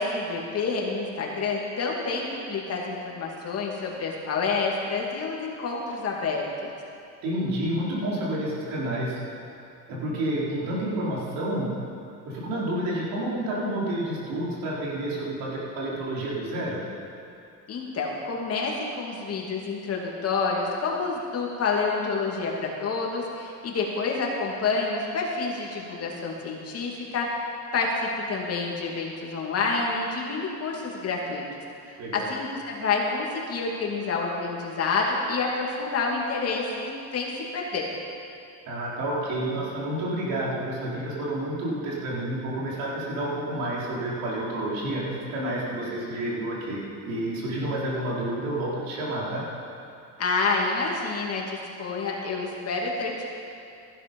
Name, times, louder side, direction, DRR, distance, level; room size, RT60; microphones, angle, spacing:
voice 1, 0.0-6.7 17.7-27.3 27.7-31.4 31.9-37.9 50.2-53.3, left 4 dB, 40° left, -2 dB, 2.7 m, -28 dB
voice 2, 7.2-9.2 9.9-11.7 12.2-16.8 32.0-32.3 38.7-49.4, right 1 dB, 75° right, -6 dB, 4.4 m, -29 dB
15.5 x 11.5 x 5.5 m, 2.6 s
cardioid pair, 115°, 35 cm